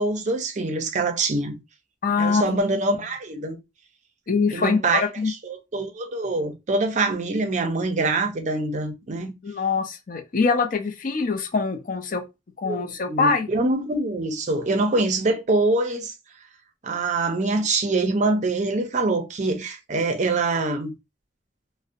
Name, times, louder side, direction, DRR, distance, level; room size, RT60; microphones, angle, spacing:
voice 1, 0.0-1.6 2.2-3.6 4.5-9.3 12.6-16.1 16.8-20.9, right 2 dB, 40° right, 0.5 m, -24 dB
voice 2, 2.0-2.8 4.3-5.3 9.4-12.2 12.6-13.5, left 4 dB, 50° left, 0.4 m, -24 dB
2.5 x 2.0 x 2.5 m
head